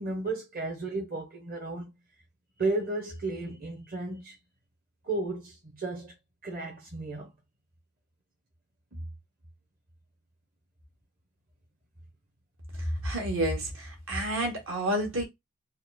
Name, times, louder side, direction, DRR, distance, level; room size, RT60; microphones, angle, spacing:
voice 1, 0.0-1.9 2.6-4.4 5.0-6.1 6.4-7.3 8.9-9.0, right 2 dB, 45° right, 1.1 m, -33 dB
voice 2, 13.0-15.2, right 1 dB, 65° right, 1.8 m, -29 dB
4.2 x 2.4 x 4.2 m
head